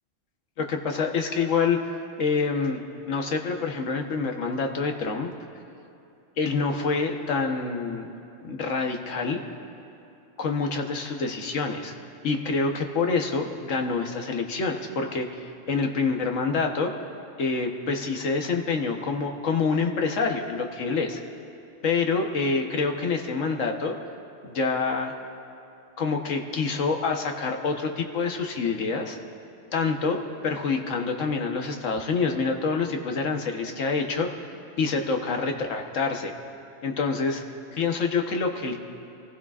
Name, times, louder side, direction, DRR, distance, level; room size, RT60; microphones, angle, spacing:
voice 1, 0.6-1.8 2.2-2.8 3.1-5.3 6.4-8.1 8.4-9.4 10.4-11.9 12.2-16.9 17.4-21.2 21.8-24.0 24.4-25.1 26.0-29.2 29.7-34.3 34.8-36.3 36.8-37.4 37.7-38.8, left 4 dB, 75° left, 3 dB, 1.4 m, -26 dB
25.5 x 15.5 x 2.4 m, 2.7 s
omnidirectional pair, 1.3 m